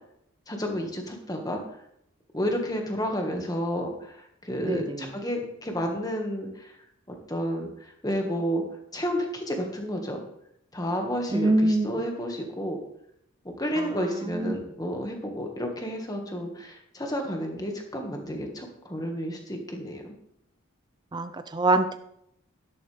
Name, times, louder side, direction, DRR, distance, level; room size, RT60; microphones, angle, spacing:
voice 1, 0.5-1.6 2.3-6.7 7.1-8.6 8.9-10.2 10.7-12.8 13.5-20.1, equal, 15° left, 2 dB, 1.8 m, -31 dB
voice 2, 4.6-5.1 11.3-11.9 13.8-14.7 21.1-22.0, right 2 dB, 20° right, 10 dB, 0.5 m, -25 dB
12.0 x 11.0 x 3.5 m, 0.74 s
head